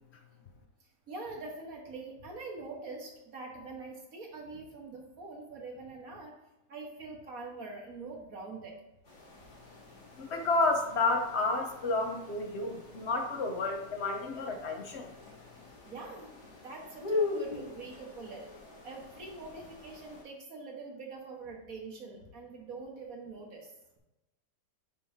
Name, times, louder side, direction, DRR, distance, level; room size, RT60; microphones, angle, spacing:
voice 1, 1.1-6.3 6.7-8.7 15.8-18.5 18.8-24.0, right 3 dB, 55° right, 0 dB, 1.8 m, -44 dB
sound 1, 9.0-20.2, left 3 dB, 70° left, 2.7 m, -41 dB
voice 2, 10.2-15.1, left 3 dB, 45° left, 4 dB, 1.0 m, -31 dB
10.0 x 5.4 x 2.8 m, 0.99 s
omnidirectional pair, 1.8 m